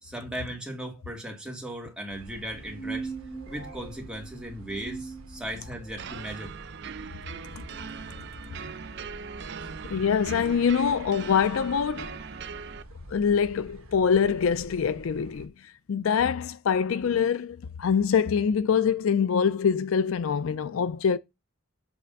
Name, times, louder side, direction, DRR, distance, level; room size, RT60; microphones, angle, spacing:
voice 1, 0.0-3.1 3.5-6.5, right 1 dB, 5° right, 2.0 m, -37 dB
sound 1, 2.1-15.5, right 1 dB, 80° right, 1.5 m, -47 dB
sound 2, 2.5-6.0, right 4 dB, 20° left, 1.0 m, -40 dB
sound 3, 6.0-12.8, right 6 dB, 55° right, 0.5 m, -40 dB
voice 2, 9.9-12.2 13.1-15.5 15.9-21.2, left 6 dB, 70° left, 0.4 m, -24 dB
7.9 x 3.3 x 5.2 m
head